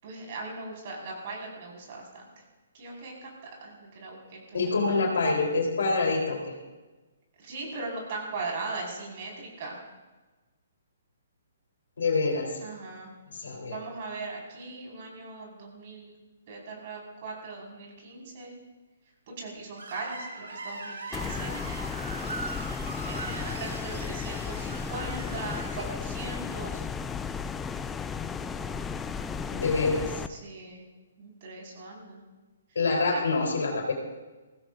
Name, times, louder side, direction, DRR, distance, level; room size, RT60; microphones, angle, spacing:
voice 1, 0.0-2.4 2.7-5.0 7.4-9.8 12.6-13.1 13.6-16.2 16.5-18.5 19.3-21.6 23.1-26.8 30.3-30.8 31.2-32.2 32.9-33.2, right 3 dB, 45° right, -2 dB, 5.0 m, -39 dB
voice 2, 4.5-6.6 12.0-12.5 13.3-13.8 29.5-30.2 32.8-33.9, left 3 dB, 65° left, -1 dB, 3.7 m, -26 dB
Screech, 19.8-25.8, right 3 dB, 70° right, 3.5 m, -40 dB
sound 1, 21.1-30.3, left 6 dB, 10° left, 0.5 m, -34 dB
22.0 x 16.0 x 2.6 m, 1.2 s
figure-of-eight pair, 130°, 0 cm